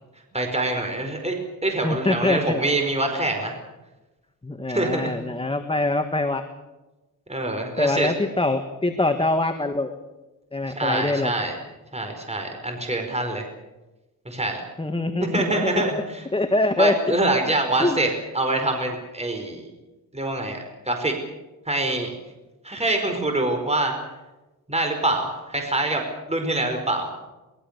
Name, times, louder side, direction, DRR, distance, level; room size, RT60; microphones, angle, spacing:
voice 1, 0.3-3.6 4.7-5.1 7.3-8.1 10.7-11.6 11.9-13.5 14.2-14.6 15.3-16.2 16.8-18.1 18.3-19.7 20.1-20.6 20.8-21.2 21.6-22.1 22.6-23.9 24.7-27.1, right 2 dB, 20° right, 4 dB, 5.1 m, -25 dB
voice 2, 1.8-2.7 4.4-6.4 7.8-9.9 10.5-11.3 14.8-15.8 16.3-17.2 17.8-18.0, left 2 dB, 15° left, 6 dB, 1.8 m, -24 dB
24.0 x 22.0 x 6.9 m, 1.1 s
wide cardioid pair, 95°, 34 cm